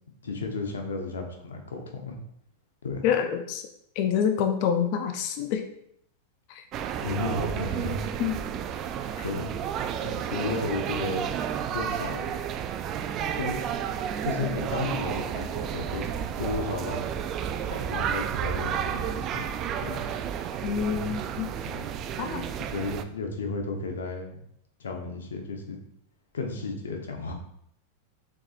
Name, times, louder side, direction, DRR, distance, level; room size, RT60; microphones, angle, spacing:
voice 1, 0.1-2.2 2.8-3.0 7.0-8.1 9.2-9.5 10.0-11.3 11.7-12.2 13.3-13.7 14.2-17.0 17.7-19.5 19.8-20.1 21.7-22.0 22.6-24.4 24.8-25.8 26.3-27.3, left 3 dB, 90° left, 3 dB, 0.8 m, -33 dB
voice 2, 3.0-3.6 4.0-5.6 6.6-6.7 8.2-8.4 20.6-21.5 22.2-22.4, left 8 dB, 55° left, 6 dB, 0.5 m, -26 dB
sound 1, 6.7-23.0, right 8 dB, 40° right, 0.3 m, -31 dB
4.6 x 3.9 x 2.5 m, 0.71 s
hypercardioid pair, 110°, 0 cm